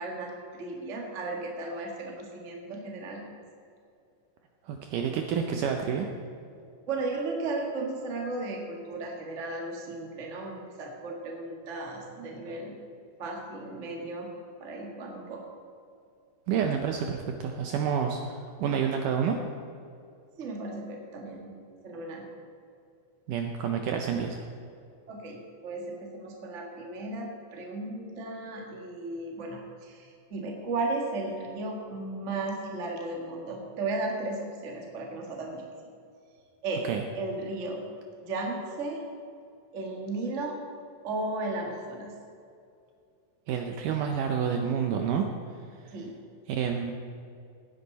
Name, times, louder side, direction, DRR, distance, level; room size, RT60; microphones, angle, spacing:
voice 1, 0.0-3.3 6.9-12.7 13.2-14.3 14.6-15.4 20.4-21.5 21.8-22.3 25.1-35.6 36.6-36.8 37.1-37.9 38.2-39.0 39.7-40.6 41.0-42.1 45.9-46.1, right 2 dB, 35° right, 0 dB, 1.2 m, -35 dB
voice 2, 4.7-6.1 16.5-19.4 23.3-24.4 36.9-37.0 43.5-45.3 45.9-46.0 46.5-46.9, right 7 dB, 75° right, 3 dB, 2.0 m, -29 dB
17.0 x 10.5 x 4.1 m, 2.4 s
omnidirectional pair, 4.3 m